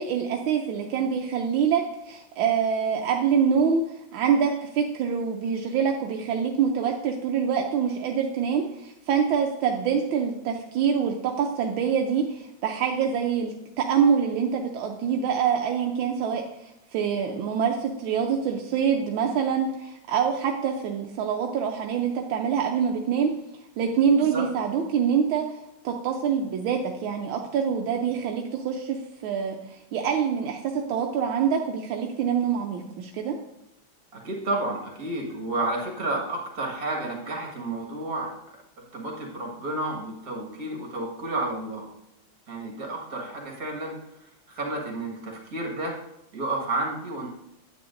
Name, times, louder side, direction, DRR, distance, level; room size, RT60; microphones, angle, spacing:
voice 1, 0.0-23.3 23.8-25.5 25.8-29.0 29.2-33.4, right 7 dB, 80° right, 2 dB, 1.4 m, -25 dB
voice 2, 34.1-38.3 38.9-41.9 42.5-44.0 44.5-46.0 46.3-47.3, right 2 dB, 50° right, 0 dB, 2.1 m, -31 dB
9.6 x 8.3 x 2.5 m, 0.87 s
omnidirectional pair, 2.2 m